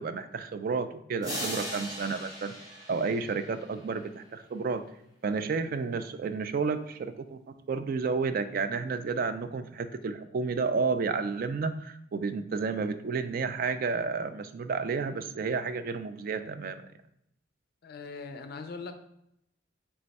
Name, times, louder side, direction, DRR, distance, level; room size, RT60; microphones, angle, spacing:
voice 1, 0.0-2.5 2.9-4.8 5.2-7.4 7.7-16.9, right 4 dB, 45° right, 10 dB, 0.3 m, -31 dB
sound 1, 1.2-3.9, equal, 20° right, 1.3 m, -38 dB
voice 2, 17.8-18.9, left 4 dB, 50° left, 8 dB, 0.4 m, -40 dB
3.4 x 3.3 x 4.0 m, 0.77 s
head